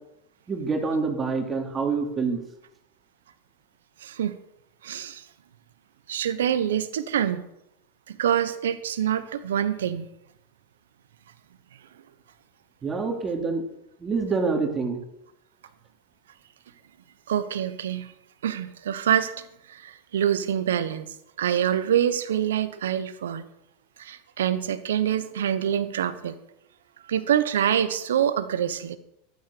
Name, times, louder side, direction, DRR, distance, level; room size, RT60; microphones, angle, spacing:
voice 1, 0.5-2.4 12.8-13.6 14.0-15.0, right 4 dB, 25° right, 3 dB, 2.9 m, -26 dB
voice 2, 4.0-4.4 4.8-5.2 6.1-7.4 8.1-10.1 17.3-18.1 18.4-21.1 21.4-23.4 24.0-26.3 27.1-29.0, right 9 dB, 80° right, 13 dB, 1.1 m, -26 dB
13.0 x 9.3 x 6.8 m, 0.82 s
hypercardioid pair, 105°, 0 cm